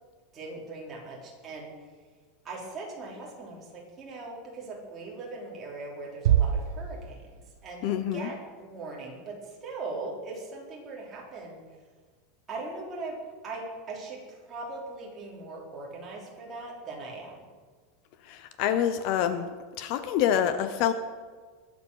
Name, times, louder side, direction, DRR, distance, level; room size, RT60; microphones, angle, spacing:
voice 1, 0.3-1.7 2.4-11.6 12.5-13.2 13.4-17.4, right 3 dB, 20° right, -3 dB, 3.7 m, -40 dB
sound 1, 6.2-7.7, right 10 dB, 80° right, 0.6 m, -26 dB
voice 2, 7.8-8.3 18.3-19.5 19.8-20.9, left 9 dB, 45° left, 11 dB, 0.8 m, -26 dB
21.0 x 8.1 x 6.4 m, 1.5 s
supercardioid pair, 165°, 0 cm